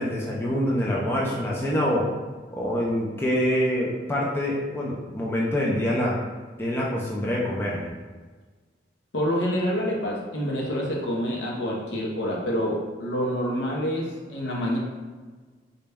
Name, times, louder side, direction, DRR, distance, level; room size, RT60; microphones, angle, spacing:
voice 1, 0.0-2.1 2.5-6.2 6.6-7.9, equal, 15° left, -4 dB, 0.4 m, -25 dB
voice 2, 9.1-14.8, equal, 75° left, -2 dB, 0.8 m, -27 dB
3.9 x 2.2 x 3.4 m, 1.4 s
head